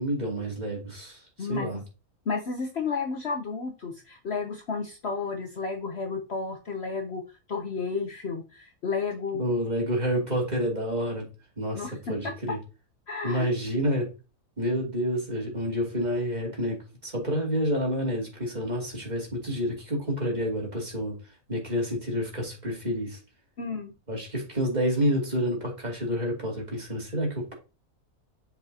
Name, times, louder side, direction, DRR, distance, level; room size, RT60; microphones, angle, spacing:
voice 1, 0.0-1.8 9.3-11.3 11.6-12.6 13.2-14.1 14.6-21.2 21.5-23.2 24.1-27.6, equal, 30° right, 2.6 m, -29 dB
voice 2, 1.4-1.8 2.3-7.2 7.5-9.4 11.7-11.9 13.1-13.5 23.6-23.9, left 4 dB, 50° left, 1.0 m, -32 dB
7.4 x 4.9 x 2.8 m
omnidirectional pair, 1.6 m